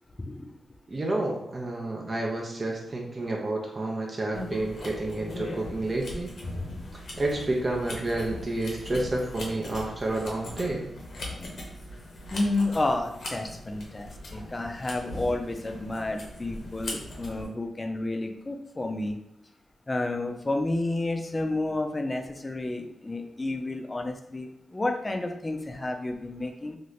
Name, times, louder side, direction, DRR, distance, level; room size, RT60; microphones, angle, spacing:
voice 1, 0.9-6.3 6.9-10.9, right 2 dB, 35° right, -1 dB, 0.5 m, -30 dB
sound 1, 4.3-17.5, left 1 dB, 70° left, 0.8 m, -39 dB
voice 2, 12.3-19.2 19.9-26.8, left 2 dB, 25° left, 4 dB, 0.4 m, -30 dB
2.7 x 2.5 x 3.2 m, 0.78 s
cardioid pair, 70°, 0 cm